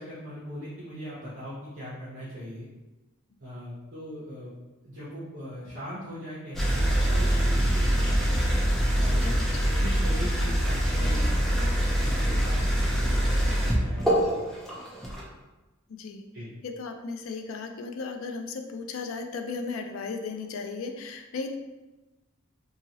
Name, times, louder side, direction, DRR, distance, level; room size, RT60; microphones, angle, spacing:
voice 1, 0.0-2.7 3.4-4.5 4.8-8.4 8.9-14.2 16.3-16.5, equal, 70° right, -9 dB, 0.8 m, -40 dB
sound 1, 6.6-15.2, equal, ahead, 0.4 m, -24 dB
voice 2, 15.9-16.2 16.6-21.5, left 4 dB, 75° left, 5 dB, 0.4 m, -35 dB
2.8 x 2.7 x 2.8 m, 1.1 s
head